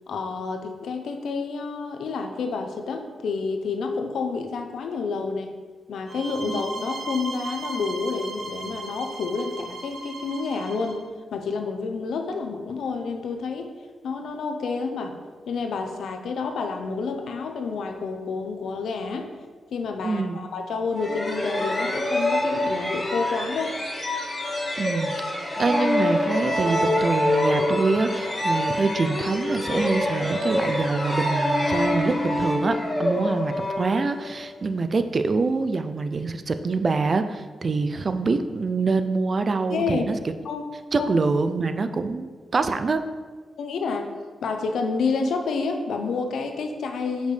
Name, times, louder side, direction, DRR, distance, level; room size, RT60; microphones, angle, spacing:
voice 1, 0.1-5.5 5.9-11.0 11.3-13.7 14.0-15.2 15.5-19.3 19.7-23.8 25.6-25.7 39.7-40.1 40.4-40.6 41.0-41.1 43.6-44.1 44.4-47.3, left 4 dB, 85° left, 5 dB, 0.6 m, -29 dB
sound 1, 6.1-11.0, right 2 dB, 55° right, 1.1 m, -36 dB
voice 2, 20.0-20.4 24.8-25.1 25.6-40.2 40.9-43.0, right 4 dB, 40° right, 9 dB, 0.4 m, -25 dB
sound 2, 20.9-34.4, left 1 dB, 15° left, 1.5 m, -25 dB
6.4 x 5.1 x 3.2 m, 1.4 s
wide cardioid pair, 135°, 0 cm